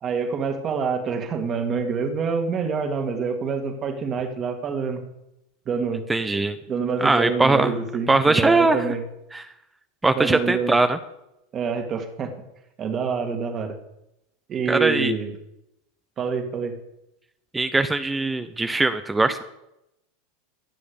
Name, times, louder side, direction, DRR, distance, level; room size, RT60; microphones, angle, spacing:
voice 1, 0.0-5.0 5.7-6.0 6.7-9.0 10.1-10.8 11.5-12.4 12.8-13.8 14.5-15.3 16.2-16.8, right 5 dB, 30° right, 5 dB, 2.1 m, -26 dB
voice 2, 6.1-6.6 7.0-7.7 8.1-8.8 9.3-9.4 10.0-11.0 14.7-15.1 17.5-19.4, right 3 dB, 10° right, 10 dB, 0.6 m, -20 dB
15.5 x 7.2 x 6.9 m, 0.87 s
supercardioid pair, 130°, 0 cm